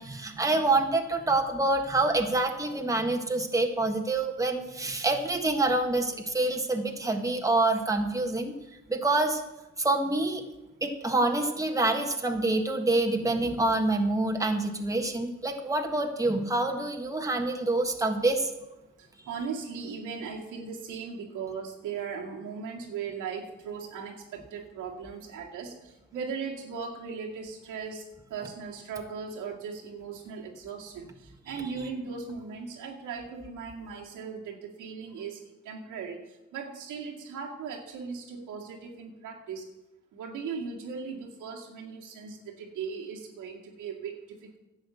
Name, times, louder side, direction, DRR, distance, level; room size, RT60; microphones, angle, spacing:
voice 1, 0.0-8.5 8.9-9.4 9.8-10.4 10.8-18.5, right 2 dB, 10° right, 3 dB, 1.5 m, -26 dB
voice 2, 19.0-28.0 28.3-39.7 40.1-44.6, right 5 dB, 90° right, -1 dB, 2.3 m, -38 dB
11.0 x 7.9 x 7.1 m, 1.0 s
cardioid pair, 90°, 30 cm